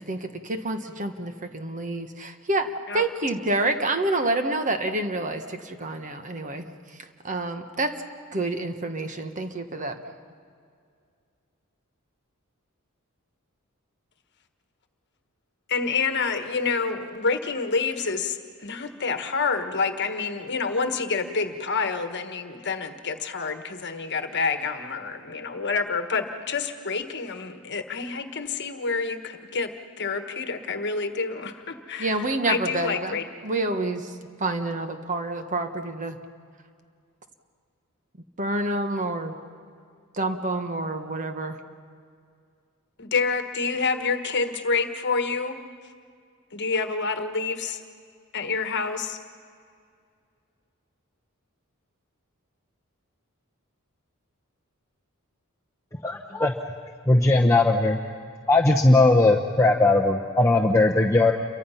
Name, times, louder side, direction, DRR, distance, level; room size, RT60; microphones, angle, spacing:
voice 1, 0.0-6.7 7.0-8.0 8.3-10.0 32.0-36.2 38.4-39.4 40.1-41.6, right 2 dB, 35° right, 7 dB, 1.3 m, -28 dB
voice 2, 15.7-33.2 43.0-45.6 46.5-47.8 48.3-49.2, left 4 dB, 55° left, 7 dB, 1.4 m, -28 dB
voice 3, 56.0-56.5 57.1-58.0 58.5-61.3, left 2 dB, 15° left, 0 dB, 0.9 m, -19 dB
28.5 x 23.5 x 5.7 m, 2.2 s
head